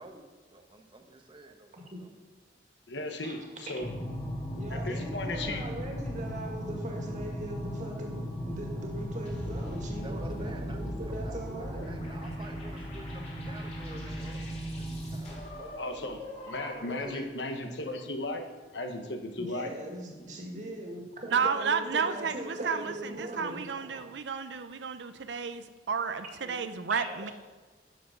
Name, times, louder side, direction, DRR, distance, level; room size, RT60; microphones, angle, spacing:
voice 1, 0.0-2.1 10.0-10.8 11.1-14.7 15.1-16.3 16.6-17.5, right 2 dB, 30° right, 4 dB, 1.0 m, -49 dB
voice 2, 2.9-3.9 4.7-5.6 15.8-18.4 18.7-19.7, left 2 dB, 80° left, 5 dB, 1.2 m, -36 dB
sound 1, 3.8-15.2, equal, 20° left, 1.1 m, -37 dB
voice 3, 4.6-11.9 19.4-23.7 23.9-24.0 26.2-26.6 26.9-27.3, right 1 dB, 45° right, 0 dB, 2.0 m, -40 dB
sound 2, 9.2-17.1, left 1 dB, 35° left, 2.5 m, -43 dB
voice 4, 21.3-27.3, right 6 dB, 80° right, 10 dB, 0.6 m, -32 dB
11.0 x 6.7 x 5.2 m, 1.3 s
head